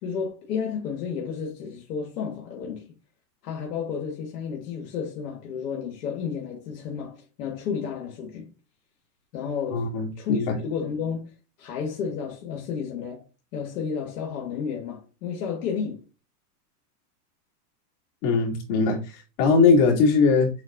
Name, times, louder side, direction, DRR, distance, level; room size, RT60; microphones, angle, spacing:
voice 1, 0.0-2.9 3.4-8.5 9.3-9.9 10.2-11.3 11.6-13.2 13.5-16.0, left 6 dB, 75° left, 1.5 m, -31 dB
voice 2, 9.7-10.6 18.2-20.5, left 4 dB, 50° left, 2.3 m, -21 dB
7.6 x 2.5 x 2.4 m
supercardioid pair, 140°, 49 cm